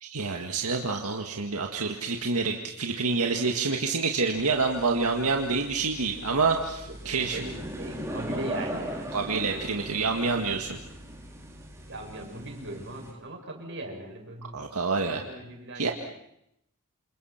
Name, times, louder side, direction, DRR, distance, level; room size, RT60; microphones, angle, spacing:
voice 1, 0.0-7.4 9.1-10.8 14.5-15.2 15.7-15.9, right 4 dB, 85° right, 2 dB, 1.9 m, -27 dB
sound 1, 4.3-13.1, right 1 dB, 15° right, 4.8 m, -39 dB
voice 2, 6.9-9.2 9.5-9.7 11.9-15.9, right 1 dB, 55° right, 2 dB, 6.9 m, -39 dB
28.5 x 28.0 x 5.9 m, 0.81 s
head